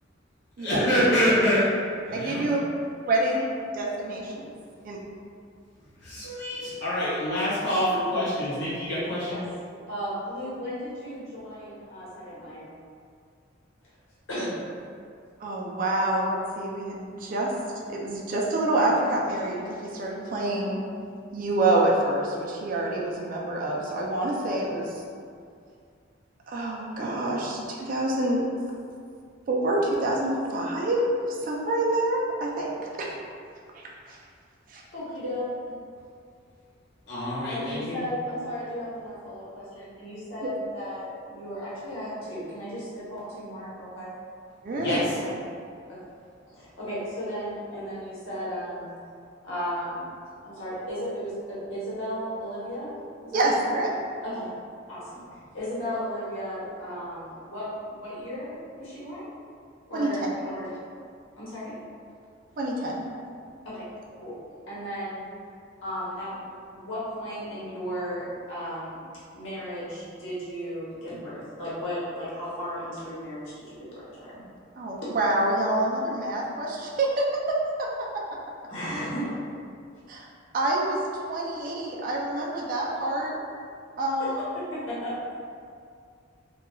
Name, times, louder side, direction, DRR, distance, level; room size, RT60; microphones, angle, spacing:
voice 1, 0.6-1.6 2.2-2.4 6.0-9.4 37.1-38.0 44.7-45.1, equal, 55° left, -11 dB, 0.6 m, -26 dB
voice 2, 2.1-2.6 3.1-4.2 4.8-5.0 15.4-17.5 17.9-20.8 21.3-25.0 26.5-28.4 29.5-31.1 31.4-32.7 33.0-33.1 33.8-34.2 34.7-34.8 44.6-45.0 53.3-53.9 59.9-60.1 62.6-63.0 74.8-77.3 77.8-77.9 80.1-80.3 80.5-81.0 81.3-83.4 84.0-84.4, right 1 dB, 45° right, -2 dB, 0.3 m, -27 dB
voice 3, 9.9-12.6 14.3-14.5 34.9-35.7 37.5-44.1 44.7-45.4 45.9-46.0 46.5-48.9 49.4-50.1 50.4-52.9 53.2-53.7 54.2-54.5 54.9-58.5 58.8-59.3 59.9-60.8 61.4-61.7 63.6-63.9 64.1-64.3 64.7-65.2 65.8-69.0 69.3-74.4 75.0-75.1 78.7-79.3 84.2-85.1, equal, 80° left, -9 dB, 1.0 m, -35 dB
3.0 x 2.3 x 2.2 m, 2.3 s
head